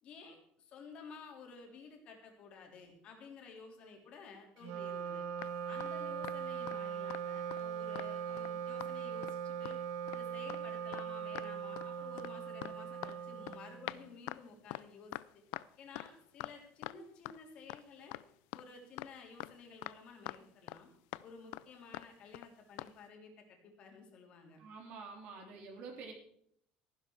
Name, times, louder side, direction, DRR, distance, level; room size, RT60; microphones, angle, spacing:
voice 1, 0.0-5.2 5.7-9.8 10.1-15.4 15.8-18.2 18.5-20.9 21.2-24.6, left 4 dB, 40° left, 2 dB, 3.4 m, -53 dB
Wind instrument woodwind instrument, 4.6-14.2, right 8 dB, 85° right, 1.6 m, -40 dB
sound 1, 5.4-6.8 7.1-7.3 7.5-8.5 8.8-9.0 9.2-9.8 10.1-10.2 10.5-10.6 10.9-11.1 11.4-11.9 12.2-17.4 17.7-17.8 18.1-20.0 20.3-20.8 21.1-21.3 21.5-21.7 21.9-22.1 22.3-22.5 22.8-22.9, left 19 dB, 85° left, 0.5 m, -44 dB
voice 2, 24.6-26.1, right 4 dB, 50° right, 1 dB, 3.4 m, -48 dB
14.5 x 12.0 x 4.6 m, 0.67 s
cardioid pair, 175°, 3 cm